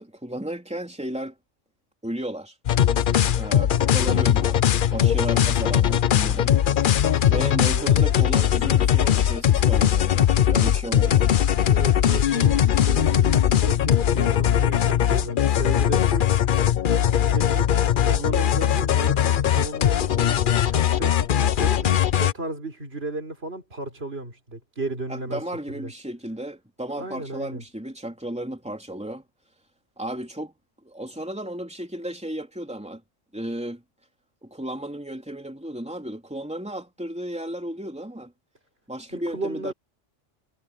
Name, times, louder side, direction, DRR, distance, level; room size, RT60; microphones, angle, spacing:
voice 1, 0.0-1.4 2.0-2.5 3.4-4.6 4.9-6.6 7.3-11.3 25.1-29.2 30.0-30.5 30.8-33.0 33.3-33.8 34.4-38.3 38.9-39.7, right 1 dB, 5° right, 3.5 m, -34 dB
sound 1, 2.7-22.3, left 10 dB, 55° left, 0.7 m, -20 dB
voice 2, 11.7-16.7 17.3-25.9 26.9-27.6 39.1-39.7, right 2 dB, 55° right, 4.5 m, -34 dB
omnidirectional pair, 1.2 m